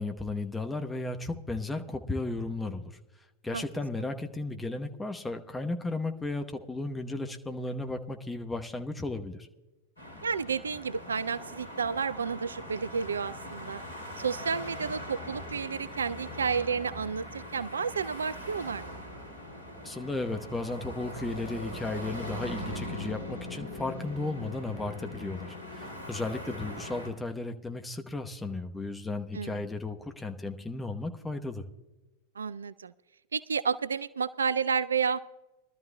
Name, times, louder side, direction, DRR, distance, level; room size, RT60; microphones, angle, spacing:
voice 1, 0.0-3.0 3.4-9.5 19.8-31.6, left 2 dB, 10° left, 5 dB, 0.9 m, -34 dB
sound 1, 10.0-27.1, left 1 dB, 75° left, 2.7 m, -41 dB
voice 2, 10.2-13.8 14.2-19.0 29.3-29.6 32.4-32.9 33.3-35.2, right 6 dB, 70° right, 17 dB, 0.3 m, -31 dB
22.5 x 12.5 x 2.2 m, 1.1 s
figure-of-eight pair, 90°, 0 cm